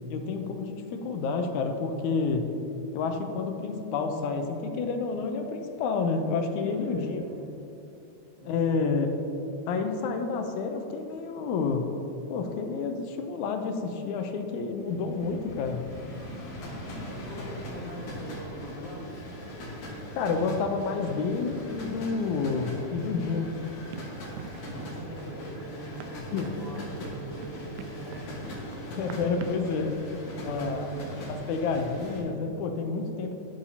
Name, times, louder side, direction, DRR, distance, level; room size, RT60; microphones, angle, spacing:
voice 1, 0.1-2.5 2.9-7.3 8.5-9.1 9.7-11.9 12.3-15.9 20.1-23.5 26.3-26.5 29.0-29.9 30.4-31.0 31.5-33.4, left 4 dB, 90° left, 5 dB, 2.1 m, -29 dB
voice 2, 6.6-7.5 8.4-8.8 17.0-19.1 24.6-28.5 30.3-31.5, right 2 dB, 55° right, -5 dB, 1.5 m, -42 dB
sound 1, 14.8-32.2, equal, 75° left, 2.9 m, -40 dB
Run, 23.9-29.7, right 7 dB, 80° right, 1.8 m, -46 dB
13.0 x 6.5 x 2.7 m, 2.9 s
omnidirectional pair, 3.4 m